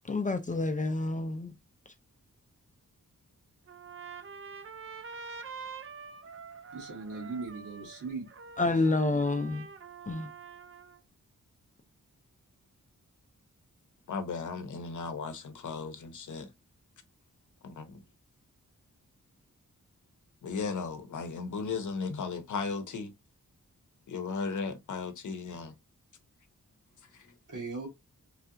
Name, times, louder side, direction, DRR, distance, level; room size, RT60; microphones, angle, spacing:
voice 1, 0.0-1.5 8.6-9.7 10.1-10.3, left 2 dB, 25° left, 0.4 m, -28 dB
Trumpet, 3.7-11.0, right 5 dB, 45° right, 0.5 m, -46 dB
voice 2, 6.7-8.3 27.5-27.9, right 4 dB, 70° right, 1.5 m, -38 dB
voice 3, 14.1-16.5 17.6-18.0 20.4-23.1 24.1-25.7 27.1-27.3, left 4 dB, 70° left, 0.7 m, -36 dB
3.2 x 2.8 x 2.5 m
wide cardioid pair, 180°, 31 cm